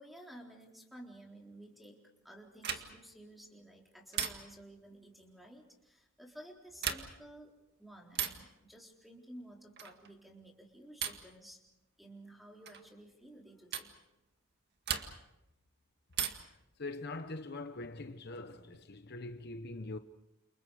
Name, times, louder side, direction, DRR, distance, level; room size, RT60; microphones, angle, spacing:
voice 1, 0.0-11.6 12.0-13.9, right 1 dB, ahead, 4.0 m, -54 dB
sound 1, 2.6-3.1 4.1-4.7 6.7-7.3 8.1-8.5 9.8-10.1 11.0-11.4 12.7-12.9 13.7-14.0 14.9-15.4 16.1-16.6 18.1-18.8, right 8 dB, 55° right, 2.0 m, -38 dB
voice 2, 16.8-20.0, left 2 dB, 55° left, 1.0 m, -43 dB
29.5 x 28.5 x 5.0 m
head